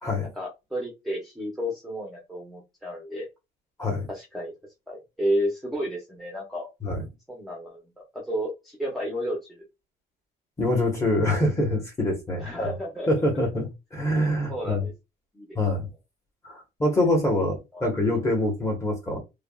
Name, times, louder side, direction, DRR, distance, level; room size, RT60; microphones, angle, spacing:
voice 1, 0.4-3.3 4.1-4.5 4.9-6.7 7.3-7.8 8.3-9.7 12.4-13.2 14.5-14.9 15.3-15.6 17.7-17.9, equal, ahead, 0.7 m, -31 dB
voice 2, 10.6-12.8 13.1-14.9 15.5-15.9 16.4-19.2, left 1 dB, 15° left, 1.0 m, -25 dB
3.3 x 2.2 x 2.2 m
cardioid pair, 155°, 18 cm